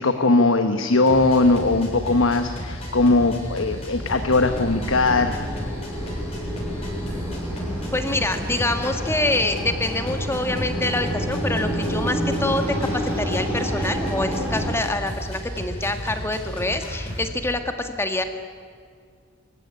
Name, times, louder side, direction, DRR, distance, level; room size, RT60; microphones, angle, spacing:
voice 1, 0.0-5.4, left 3 dB, 70° left, 7 dB, 1.1 m, -19 dB
sound 1, 1.0-17.2, equal, 30° left, 7.1 m, -33 dB
sound 2, 4.0-14.7, equal, 10° right, 4.8 m, -29 dB
voice 2, 7.9-18.2, left 2 dB, 10° left, 6 dB, 1.6 m, -26 dB
25.0 x 15.5 x 9.8 m, 2.1 s
head